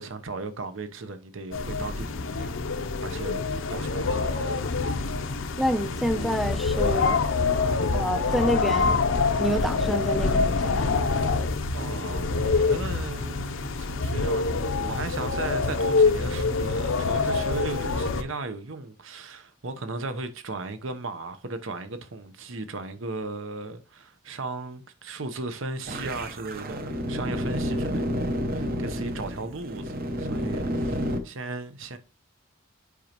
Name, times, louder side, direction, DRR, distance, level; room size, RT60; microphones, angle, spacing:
voice 1, 0.0-2.6 3.0-4.6 4.8-5.5 11.7-32.0, right 3 dB, 75° right, 0.9 m, -36 dB
sound 1, 1.5-18.2, left 4 dB, 70° left, 0.6 m, -26 dB
voice 2, 5.6-7.2 7.9-9.0 9.4-11.0, equal, ahead, 0.5 m, -28 dB
sound 2, 25.9-31.2, equal, 45° right, 0.8 m, -30 dB
8.4 x 5.2 x 3.0 m
head